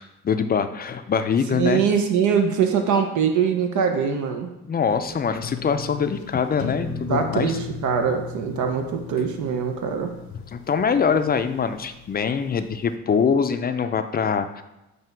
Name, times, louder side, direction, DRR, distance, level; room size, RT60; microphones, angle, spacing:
voice 1, 0.0-1.8 4.7-7.6 10.5-14.6, left 6 dB, 30° left, 9 dB, 0.4 m, -23 dB
voice 2, 1.5-4.5 7.1-10.1, right 7 dB, 75° right, 5 dB, 0.7 m, -23 dB
sound 1, 4.9-13.0, left 6 dB, 70° left, 0.7 m, -37 dB
7.6 x 2.8 x 4.5 m, 0.94 s
cardioid pair, 90°, 30 cm